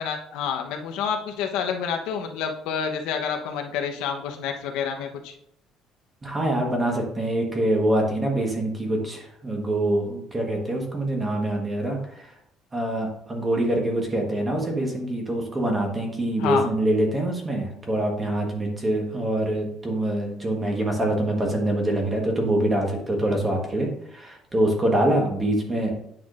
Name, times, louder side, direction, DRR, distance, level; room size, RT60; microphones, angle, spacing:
voice 1, 0.0-5.3 16.4-16.7, left 7 dB, 80° left, 3 dB, 1.0 m, -28 dB
voice 2, 6.2-12.3 12.7-25.9, right 1 dB, 15° right, 1 dB, 1.3 m, -25 dB
9.1 x 5.9 x 2.5 m, 0.74 s
cardioid pair, 180°, 0 cm